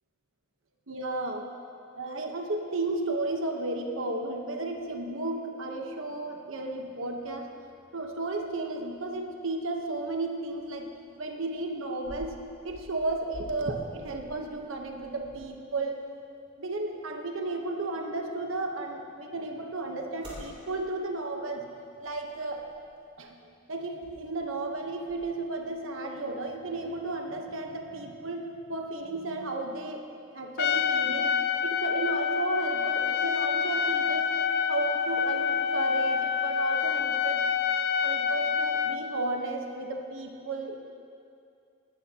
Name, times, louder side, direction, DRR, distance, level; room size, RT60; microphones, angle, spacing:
voice 1, 0.9-1.5 1.9-7.5 7.9-10.9 11.2-12.4 12.6-16.0 16.6-21.6 22.0-22.6 23.2-23.3 23.7-30.0 30.3-31.3 31.6-34.3 34.7-37.4 38.0-40.8, right 2 dB, 80° right, 2 dB, 1.2 m, -33 dB
sound 1, 6.8-25.8, equal, 30° right, 3.5 m, -53 dB
Trumpet, 30.6-39.0, left 6 dB, 50° left, 0.5 m, -27 dB
18.0 x 13.0 x 3.0 m, 2.4 s
head